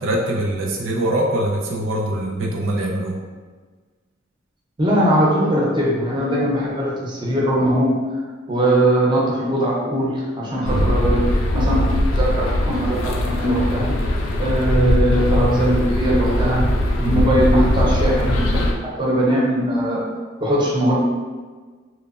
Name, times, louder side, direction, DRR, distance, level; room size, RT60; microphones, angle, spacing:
voice 1, 0.0-3.2 10.6-10.9 17.0-17.3, right 1 dB, 80° right, -1 dB, 0.4 m, -23 dB
voice 2, 4.8-8.0 8.5-11.8 12.1-14.0 14.4-16.7 17.0-18.6 18.8-20.1 20.4-20.9, right 1 dB, 25° right, -5 dB, 0.5 m, -20 dB
sound 1, 10.6-18.7, left 1 dB, 90° left, 0.4 m, -20 dB
2.9 x 2.0 x 2.3 m, 1.4 s
head